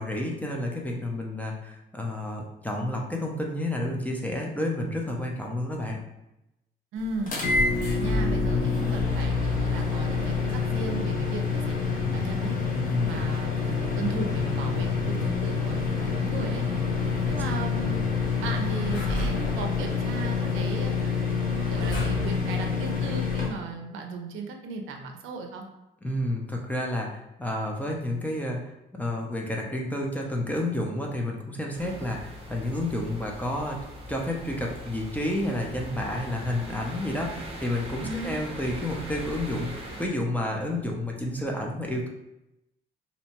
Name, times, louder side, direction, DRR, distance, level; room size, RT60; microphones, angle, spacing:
voice 1, 0.0-6.0 12.7-13.2 17.2-17.4 26.0-28.6 28.9-33.8 34.1-42.1, left 1 dB, 10° left, 0 dB, 0.5 m, -30 dB
voice 2, 6.9-7.4 7.7-12.6 13.1-15.8 16.1-16.6 17.3-18.1 18.4-25.6 38.0-38.4, right 3 dB, 85° right, 3 dB, 0.5 m, -36 dB
sound 1, 7.3-23.5, left 5 dB, 40° left, 0.8 m, -27 dB
sound 2, 7.4-22.6, left 1 dB, 75° left, 1.0 m, -36 dB
sound 3, 31.7-40.1, right 1 dB, 30° right, 0.8 m, -40 dB
2.7 x 2.1 x 2.9 m, 0.89 s
cardioid pair, 90°, 20 cm